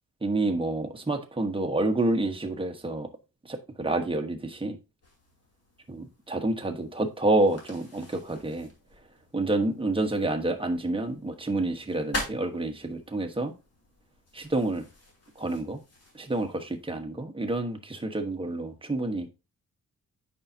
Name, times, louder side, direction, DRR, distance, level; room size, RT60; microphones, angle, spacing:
voice 1, 0.2-3.1 3.4-4.8 5.9-8.7 9.3-13.5 14.3-14.8 15.4-15.8 16.1-19.3, right 2 dB, 15° right, 1.3 m, -28 dB
sound 1, 5.0-16.9, left 1 dB, 45° left, 3.0 m, -44 dB
8.6 x 5.6 x 2.8 m
cardioid pair, 105°, 35 cm